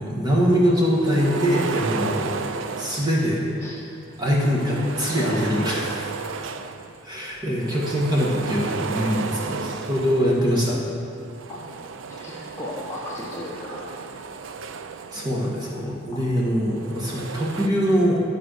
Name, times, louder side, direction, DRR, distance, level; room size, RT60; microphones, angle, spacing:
voice 1, 0.0-2.5 2.8-3.7 4.2-6.1 7.0-10.8 15.1-18.2, equal, 20° right, -4 dB, 1.6 m, -23 dB
sound 1, 0.9-3.5 4.1-7.0 7.4-10.6 11.2-16.0 16.6-17.7, right 5 dB, 80° right, 0.5 m, -34 dB
voice 2, 12.2-13.9 16.1-16.2, left 1 dB, 15° left, -6 dB, 1.0 m, -35 dB
12.0 x 5.5 x 6.5 m, 2.7 s
head